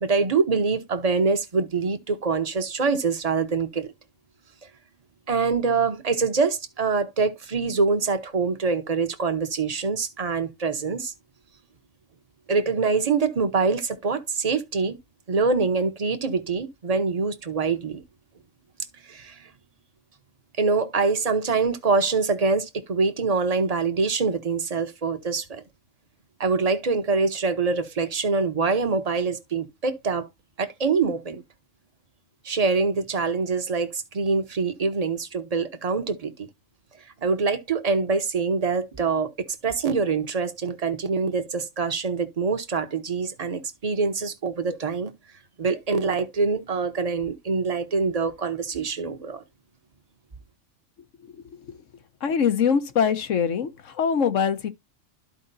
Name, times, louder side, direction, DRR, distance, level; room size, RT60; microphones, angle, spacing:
voice 1, 0.0-3.9 5.3-11.1 12.5-15.0 15.3-18.0 19.1-19.5 20.6-25.6 26.4-30.3 30.6-31.4 32.4-36.5 37.2-45.1 45.6-49.4, right 4 dB, 30° right, 1.0 m, -25 dB
voice 2, 52.2-54.7, left 7 dB, 80° left, 1.3 m, -23 dB
13.0 x 4.8 x 2.7 m
omnidirectional pair, 1.3 m